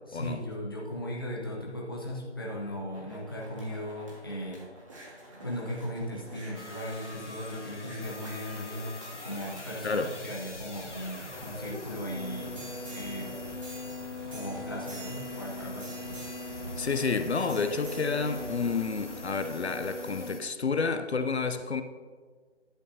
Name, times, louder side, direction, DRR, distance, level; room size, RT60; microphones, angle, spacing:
voice 1, 0.1-4.7 5.4-9.0 9.2-13.4 14.3-16.0, equal, 20° left, -3 dB, 0.7 m, -37 dB
sound 1, 2.6-20.2 20.8-20.9, right 1 dB, 30° right, 1.8 m, -47 dB
sound 2, 6.5-20.4, left 2 dB, 80° left, 1.6 m, -41 dB
voice 2, 16.8-21.8, left 4 dB, 65° left, 9 dB, 0.7 m, -30 dB
11.0 x 8.1 x 2.7 m, 1.6 s
figure-of-eight pair, 160°, 35 cm